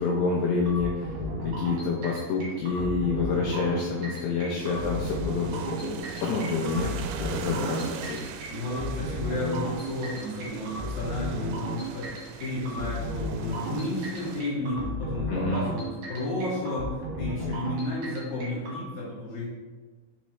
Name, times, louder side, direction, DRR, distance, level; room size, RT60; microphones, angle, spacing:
voice 1, 0.0-6.9 7.2-8.2 15.3-15.6, left 4 dB, 80° left, -3 dB, 2.5 m, -28 dB
sound 1, 0.7-18.8, equal, 60° right, 2.8 m, -34 dB
sound 2, 4.6-14.4, right 7 dB, 85° right, 3.0 m, -41 dB
voice 2, 8.5-19.5, left 1 dB, 55° left, -7 dB, 2.2 m, -32 dB
6.7 x 5.3 x 3.1 m, 1.3 s
omnidirectional pair, 5.6 m